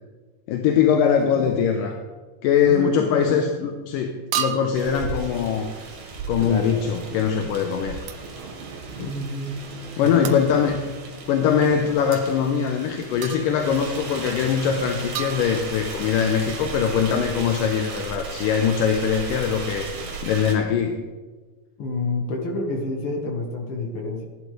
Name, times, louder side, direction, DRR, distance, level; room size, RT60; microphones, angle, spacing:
voice 1, 0.5-2.0 2.4-5.7 6.3-8.0 10.0-10.8 11.3-19.9 20.2-21.0, left 7 dB, 75° left, 3 dB, 2.2 m, -22 dB
voice 2, 1.2-1.6 2.6-3.9 6.4-6.7 9.0-9.6 10.0-10.4 21.8-24.3, left 2 dB, 55° left, 1 dB, 1.6 m, -29 dB
sound 1, 3.0-3.2 4.3-4.9 8.1-8.3 10.3-10.5 12.1-12.2 13.2-13.7 15.2-16.0, right 9 dB, 75° right, 2.3 m, -31 dB
sound 2, 4.7-20.6, right 4 dB, 55° right, 3.1 m, -36 dB
17.5 x 11.5 x 3.3 m, 1.3 s
omnidirectional pair, 4.3 m